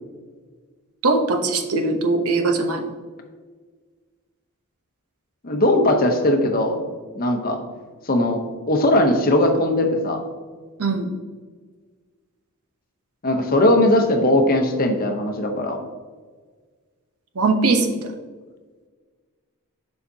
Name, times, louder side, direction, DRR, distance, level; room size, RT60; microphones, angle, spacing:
voice 1, 1.0-2.8 10.8-11.1 17.4-18.0, right 3 dB, 75° right, 5 dB, 0.9 m, -20 dB
voice 2, 5.4-6.8 7.2-7.6 8.1-8.4 8.7-10.2 13.2-15.8, left 1 dB, 40° left, 4 dB, 0.8 m, -19 dB
7.1 x 5.7 x 2.8 m, 1.5 s
head